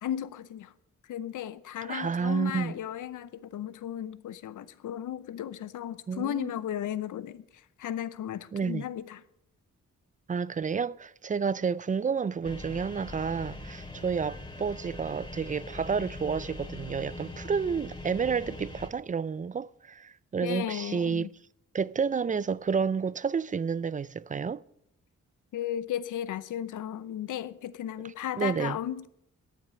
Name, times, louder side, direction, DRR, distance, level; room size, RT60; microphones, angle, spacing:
voice 1, 0.0-0.7 1.1-9.2 20.4-21.3 25.5-29.1, left 10 dB, 90° left, 0.7 m, -35 dB
voice 2, 1.9-2.7 6.1-6.5 8.5-8.9 10.3-21.3 21.7-24.6 28.4-28.8, right 6 dB, 25° right, 0.4 m, -30 dB
sound 1, 12.4-18.9, left 2 dB, 15° left, 2.4 m, -42 dB
13.5 x 8.9 x 6.3 m
cardioid pair, 80°, 30 cm